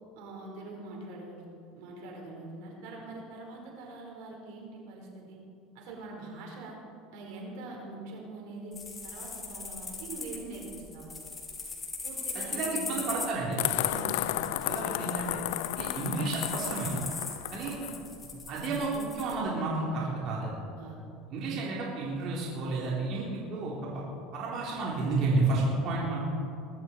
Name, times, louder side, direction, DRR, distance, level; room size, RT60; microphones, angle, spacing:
voice 1, 0.1-1.4 1.7-5.4 5.7-6.8 7.1-8.8 9.0-11.1 12.0-13.0 13.7-14.6 17.6-17.9 20.8-21.0, right 2 dB, 75° right, -1 dB, 4.7 m, -44 dB
sound 1, 8.7-19.3, left 4 dB, 25° left, 3.5 m, -40 dB
voice 2, 12.5-14.0 14.4-15.4 15.7-16.9 17.5-17.7 18.5-20.6 21.3-24.0 24.3-26.2, right 3 dB, 55° right, -5 dB, 3.8 m, -31 dB
sound 2, 13.6-18.0, left 15 dB, 80° left, 0.5 m, -33 dB
21.5 x 13.0 x 4.6 m, 2.5 s
supercardioid pair, 120°, 0 cm